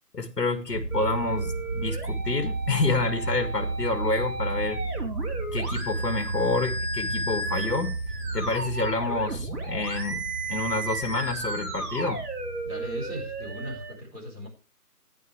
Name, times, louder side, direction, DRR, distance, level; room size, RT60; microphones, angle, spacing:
voice 1, 0.1-4.8 5.5-8.0 8.3-12.2, left 3 dB, 85° left, 7 dB, 2.1 m, -28 dB
sound 1, 0.7-13.8, right 3 dB, 30° right, 5.8 m, -33 dB
sound 2, 0.9-13.9, right 2 dB, 65° right, 3.8 m, -35 dB
voice 2, 12.6-14.5, equal, 5° right, -10 dB, 3.9 m, -37 dB
14.0 x 10.5 x 3.4 m, 0.35 s
figure-of-eight pair, 170°, 48 cm